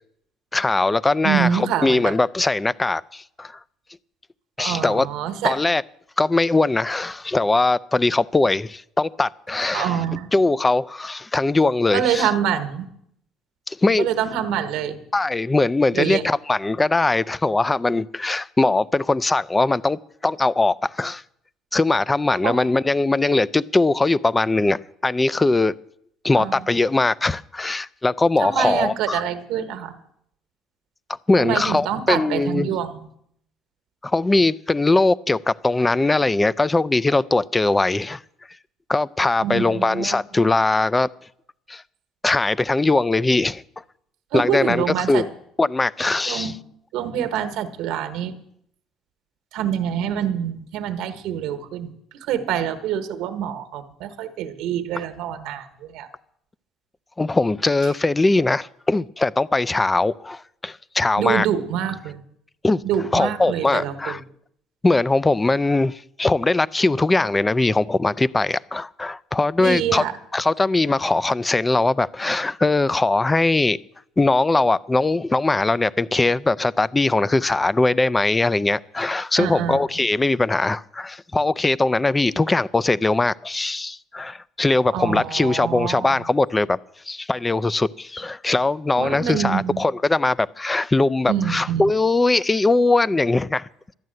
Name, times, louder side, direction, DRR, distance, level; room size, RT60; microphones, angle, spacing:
voice 1, 0.5-3.6 4.6-5.1 5.4-5.8 6.2-10.0 10.3-12.3 13.7-14.1 15.1-21.2 21.7-25.7 26.2-29.2 31.3-32.8 34.0-38.2 38.9-41.1 41.7-41.8 42.2-43.6 44.3-45.3 45.6-46.5 57.2-61.5 62.6-62.8 63.1-64.2 64.8-70.0 70.3-73.8 74.2-86.8 87.1-93.7, left 2 dB, 15° left, 0.4 m, -20 dB
voice 2, 1.2-2.1 4.6-5.6 9.7-10.3 11.9-12.9 14.0-15.0 15.9-16.2 22.4-22.6 26.3-26.6 28.4-30.0 31.4-33.0 39.4-40.2 44.3-45.2 46.3-46.6 46.9-48.4 49.5-51.9 52.2-56.1 61.2-62.2 62.8-64.2 69.6-70.1 79.4-79.8 84.9-86.2 89.0-89.8 91.3-91.9, right 9 dB, 80° right, 1.3 m, -25 dB
12.5 x 9.4 x 7.7 m
cardioid pair, 100°, 0 cm